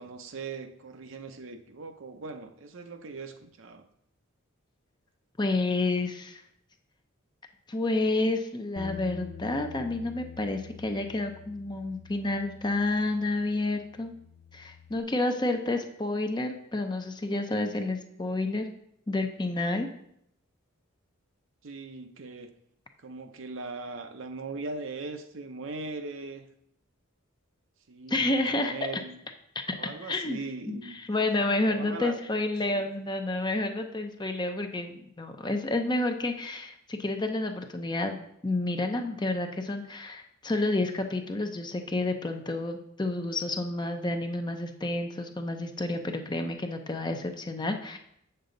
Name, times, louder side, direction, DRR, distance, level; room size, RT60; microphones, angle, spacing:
voice 1, 0.0-3.8 21.6-22.5 23.0-26.5 27.9-29.2 29.7-30.9 31.7-32.2 32.7-32.9, right 3 dB, 60° right, 7 dB, 0.7 m, -40 dB
voice 2, 5.4-6.4 7.7-14.1 14.5-18.7 19.1-19.9 28.1-28.7 30.0-30.4 30.7-48.0, left 2 dB, 20° left, 5 dB, 0.6 m, -30 dB
Bass guitar, 8.8-15.0, left 6 dB, 85° left, 0.5 m, -46 dB
7.9 x 6.7 x 3.8 m, 0.74 s
head